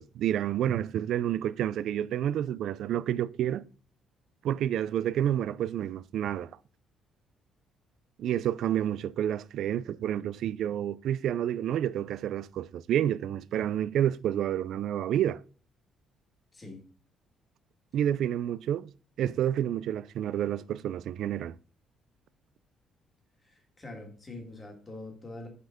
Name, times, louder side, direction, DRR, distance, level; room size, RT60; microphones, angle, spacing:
voice 1, 0.0-3.6 4.4-6.5 8.2-15.4 17.9-18.9 19.2-21.6, right 10 dB, 60° right, 0.3 m, -29 dB
voice 2, 16.5-16.8 23.4-25.5, left 2 dB, 20° left, 1.7 m, -44 dB
5.9 x 5.4 x 4.9 m
cardioid pair, 175°, 0 cm